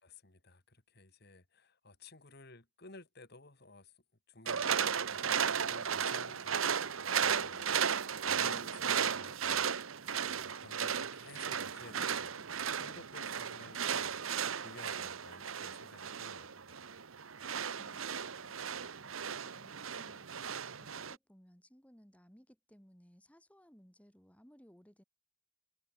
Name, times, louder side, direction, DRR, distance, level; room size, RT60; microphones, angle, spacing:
voice 1, 0.0-3.9 4.3-9.7 9.9-14.2 14.5-16.9, left 2 dB, 55° left, 3.3 m, -55 dB
sound 1, 4.5-21.1, right 7 dB, 85° right, 1.1 m, -35 dB
voice 2, 17.8-20.3 20.8-25.0, equal, 5° left, 4.0 m, -62 dB
head